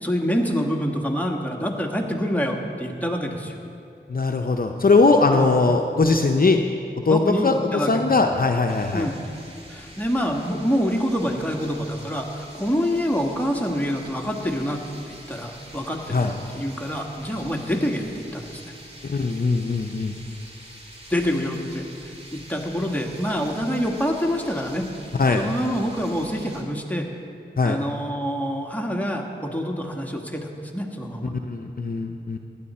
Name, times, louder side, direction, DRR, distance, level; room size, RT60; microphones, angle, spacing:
voice 1, 0.0-3.5 5.3-5.5 7.1-7.9 8.9-9.2 9.7-16.2 16.5-18.0 18.3-18.7 21.1-24.9 25.3-27.1 27.6-31.3, equal, 10° left, 1 dB, 1.5 m, -26 dB
voice 2, 4.1-6.6 7.1-9.1 16.1-16.3 19.0-20.1 25.2-25.4 27.6-27.8 31.3-32.4, left 3 dB, 50° left, 4 dB, 0.7 m, -20 dB
sound 1, 8.7-26.6, right 1 dB, 35° right, 2.0 m, -45 dB
15.0 x 10.0 x 4.3 m, 2.5 s
wide cardioid pair, 45°, 19 cm